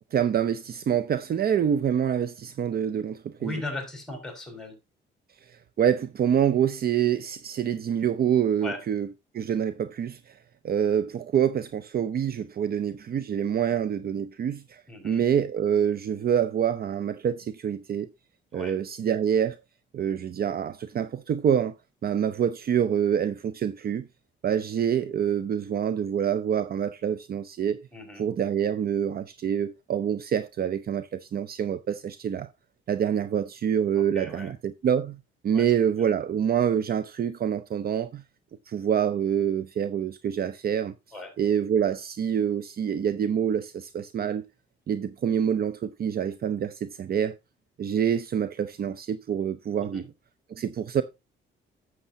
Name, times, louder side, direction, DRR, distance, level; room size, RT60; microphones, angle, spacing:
voice 1, 0.1-3.5 5.5-9.1 9.3-10.4 10.6-18.1 18.5-19.6 19.9-21.8 22.0-24.1 24.4-27.8 28.2-32.5 32.9-38.2 38.7-40.9 41.4-44.5 44.9-47.4 47.8-50.0 50.5-51.0, right 8 dB, 50° right, 0.6 m, -26 dB
voice 2, 3.4-4.8 8.6-8.8 14.9-15.2 18.5-18.8 27.9-28.3 34.0-34.5 35.5-35.7 41.1-41.4 49.8-50.0, left 2 dB, 5° left, 5.1 m, -37 dB
11.5 x 7.8 x 2.7 m
cardioid pair, 90°, 20 cm